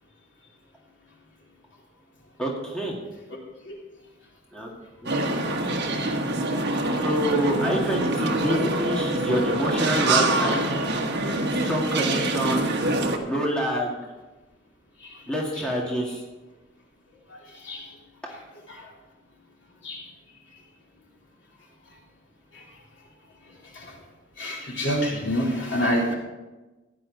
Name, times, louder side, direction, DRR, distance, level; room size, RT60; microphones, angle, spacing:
voice 1, 2.4-3.0 4.5-4.7 5.0-5.2 7.0-10.6 11.5-12.7 13.2-14.0 15.3-16.2, equal, 5° left, -4 dB, 2.0 m, -27 dB
sound 1, 5.1-13.2, right 2 dB, 60° right, 1.5 m, -25 dB
voice 2, 24.4-26.1, equal, 65° left, -3 dB, 3.6 m, -27 dB
15.5 x 10.5 x 4.0 m, 1.1 s
head